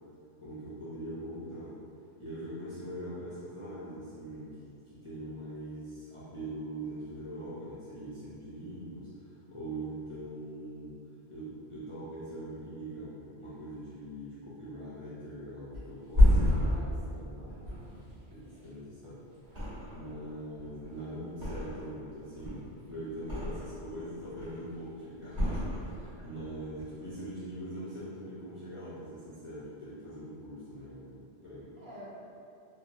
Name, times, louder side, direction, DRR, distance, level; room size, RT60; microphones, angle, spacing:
voice 1, 0.4-1.7 2.2-11.0 11.3-17.6 18.3-19.2 19.9-31.7, right 1 dB, 45° left, -12 dB, 0.4 m, -42 dB
Thump thud, 15.7-19.0 19.4-20.2 20.5-22.0 22.3-23.9 24.2-24.8 25.3-26.3 26.6-26.8, left 1 dB, 75° right, 1.6 m, -29 dB
voice 2, 16.5-18.0 18.4-18.7 31.8-32.1, equal, 55° right, -7 dB, 0.7 m, -51 dB
3.0 x 2.3 x 2.5 m, 2.7 s
omnidirectional pair, 1.1 m